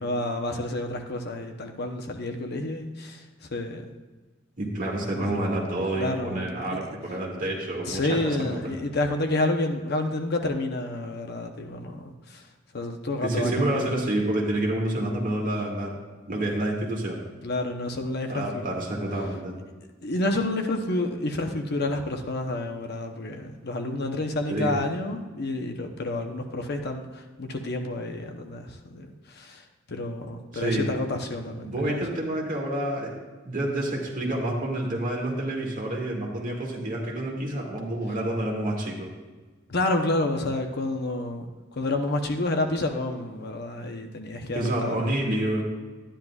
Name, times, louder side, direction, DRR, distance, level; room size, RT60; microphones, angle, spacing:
voice 1, 0.0-3.9 5.1-5.4 5.9-6.9 7.9-12.5 12.7-13.9 17.4-18.6 20.0-32.2 39.7-45.1, left 2 dB, 55° left, 4 dB, 0.8 m, -29 dB
voice 2, 4.6-8.2 8.4-8.7 13.2-15.9 16.3-17.2 18.3-19.5 24.5-24.7 30.5-30.9 31.6-33.2 33.4-39.1 44.5-45.6, right 1 dB, 40° right, -2 dB, 2.0 m, -28 dB
12.0 x 10.0 x 2.4 m, 1.3 s
head